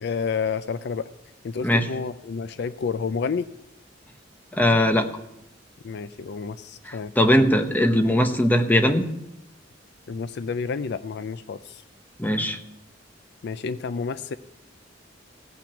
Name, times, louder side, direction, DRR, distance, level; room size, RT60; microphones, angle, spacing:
voice 1, 0.0-1.1 1.4-3.5 5.8-7.1 10.1-11.8 13.4-14.4, left 5 dB, 60° left, 13 dB, 0.4 m, -30 dB
voice 2, 4.5-5.1 6.8-9.0 12.2-12.6, equal, 10° left, 6 dB, 0.9 m, -20 dB
16.5 x 5.9 x 7.0 m, 0.85 s
head